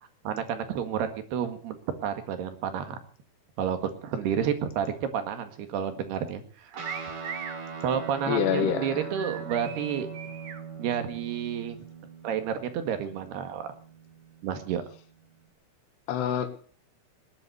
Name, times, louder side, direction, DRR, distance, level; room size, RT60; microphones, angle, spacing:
voice 1, 0.3-1.8 2.0-3.0 3.6-6.8 7.8-10.1 10.8-11.8 12.2-13.7 14.4-14.8, right 8 dB, 75° right, 8 dB, 3.8 m, -30 dB
Guitar, 6.7-15.5, right 5 dB, 40° right, 2.2 m, -41 dB
sound 1, 6.8-7.6 9.1-10.6, right 7 dB, 60° right, 1.9 m, -39 dB
voice 2, 8.3-9.1 16.1-16.5, left 9 dB, 80° left, 8 dB, 3.8 m, -26 dB
19.0 x 11.0 x 6.9 m, 0.44 s
omnidirectional pair, 4.7 m